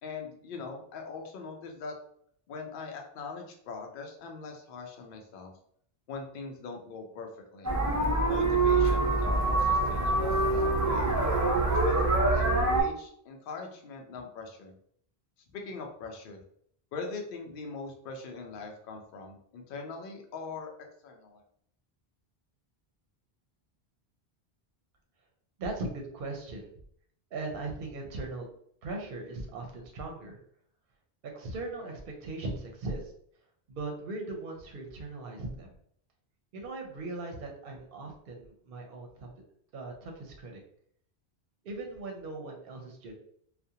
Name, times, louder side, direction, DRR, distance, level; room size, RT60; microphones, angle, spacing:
voice 1, 0.0-2.0 2.5-5.5 6.1-7.7 8.3-11.1 11.7-14.7 15.5-16.4 16.9-21.4, left 4 dB, 65° left, 2 dB, 0.7 m, -41 dB
sound 1, 7.6-12.8, right 2 dB, 30° right, 0.3 m, -25 dB
voice 2, 25.6-26.7 27.3-28.5 28.8-30.4 31.2-33.1 33.7-35.7 36.5-39.3 39.7-40.6 41.6-43.1, right 2 dB, 65° right, 2 dB, 0.7 m, -39 dB
2.4 x 2.1 x 2.7 m, 0.65 s
omnidirectional pair, 1.0 m